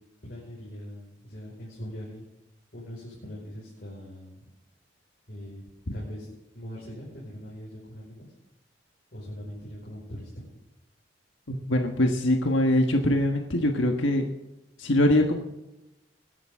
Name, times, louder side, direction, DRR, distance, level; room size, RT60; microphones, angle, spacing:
voice 1, 0.2-2.3 2.7-4.5 5.3-5.6 5.9-8.3 9.1-10.5, equal, 50° left, -5 dB, 5.3 m, -41 dB
voice 2, 11.5-14.3 14.8-15.4, left 1 dB, 75° left, 3 dB, 1.5 m, -23 dB
21.5 x 11.0 x 3.7 m, 0.96 s
head